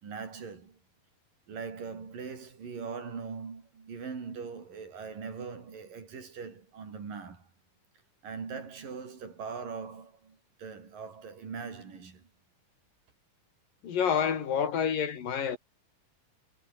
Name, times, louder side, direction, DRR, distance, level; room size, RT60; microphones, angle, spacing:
voice 1, 0.0-0.8 1.5-7.5 8.2-12.3, right 5 dB, 80° right, 6.4 m, -41 dB
voice 2, 13.8-15.6, left 7 dB, 90° left, 4.7 m, -28 dB
omnidirectional pair, 3.8 m